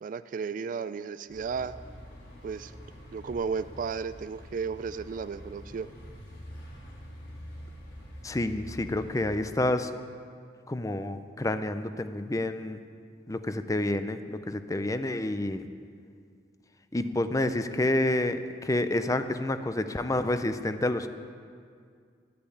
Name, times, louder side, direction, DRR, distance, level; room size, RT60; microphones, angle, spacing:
voice 1, 0.0-1.7 2.4-2.7 3.1-5.9, right 5 dB, 45° right, 14 dB, 0.3 m, -34 dB
sound 1, 1.3-9.3, equal, 85° left, 3.6 m, -46 dB
voice 2, 8.2-9.9 10.7-12.8 13.3-15.7 16.9-21.1, left 1 dB, 20° left, 10 dB, 0.5 m, -29 dB
12.0 x 8.5 x 8.5 m, 2.2 s
head